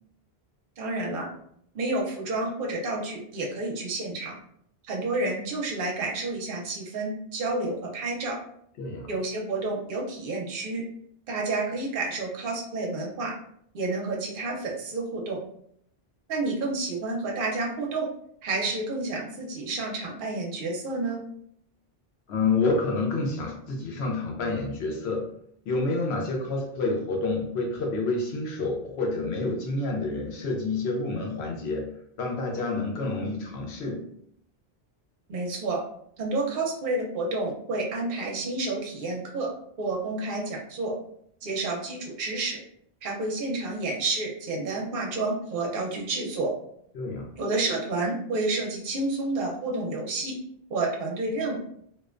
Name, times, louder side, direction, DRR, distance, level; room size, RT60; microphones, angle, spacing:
voice 1, 0.8-1.3 1.7-4.3 4.8-8.4 9.1-10.8 11.3-13.3 13.7-15.4 16.3-18.1 18.4-21.2 35.3-35.8 36.2-39.5 39.8-40.9 41.4-42.6 43.0-46.5 47.4-50.3 50.7-51.6, right 2 dB, 60° right, -1 dB, 0.8 m, -30 dB
voice 2, 8.8-9.1 22.3-25.3 25.7-34.1 46.9-47.3, left 3 dB, 90° left, 0 dB, 0.9 m, -28 dB
2.4 x 2.1 x 2.4 m, 0.68 s
omnidirectional pair, 1.0 m